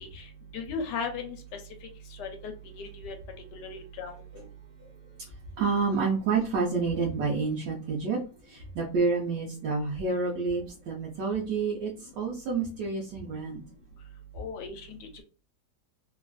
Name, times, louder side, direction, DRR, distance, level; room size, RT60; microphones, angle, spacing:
voice 1, 0.5-1.4 2.2-3.1 3.5-4.2 14.4-15.0, left 4 dB, 75° left, 5 dB, 1.2 m, -36 dB
voice 2, 5.6-8.2 8.4-13.6, right 4 dB, 75° right, -2 dB, 1.3 m, -29 dB
3.3 x 2.4 x 2.3 m, 0.35 s
omnidirectional pair, 1.9 m